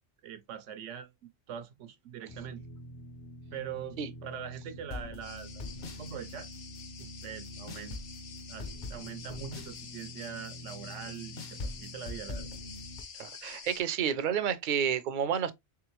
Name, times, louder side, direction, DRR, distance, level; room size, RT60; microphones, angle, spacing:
voice 1, 0.2-2.6 3.5-5.6 6.0-6.5 7.0-8.0 8.5-12.5, right 8 dB, 85° right, 1.0 m, -43 dB
sound 1, 2.3-13.0, left 1 dB, 50° left, 0.7 m, -43 dB
sound 2, 5.2-13.8, left 6 dB, 75° left, 1.1 m, -48 dB
voice 2, 13.2-15.5, right 8 dB, 60° right, 0.5 m, -30 dB
3.5 x 3.5 x 3.0 m
omnidirectional pair, 1.2 m